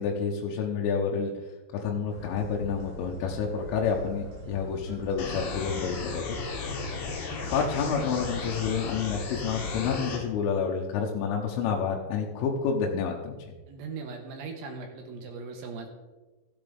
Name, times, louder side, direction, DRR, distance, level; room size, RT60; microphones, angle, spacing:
voice 1, 0.0-1.3 1.7-6.4 7.5-13.4, left 6 dB, 85° left, -1 dB, 3.5 m, -29 dB
sound 1, 2.1-9.8, right 2 dB, 40° right, 4.8 m, -42 dB
sound 2, 5.2-10.2, left 4 dB, 65° left, 3.8 m, -35 dB
voice 2, 13.7-15.9, right 4 dB, 70° right, 3 dB, 2.4 m, -39 dB
15.5 x 8.1 x 3.5 m, 1.2 s
omnidirectional pair, 5.6 m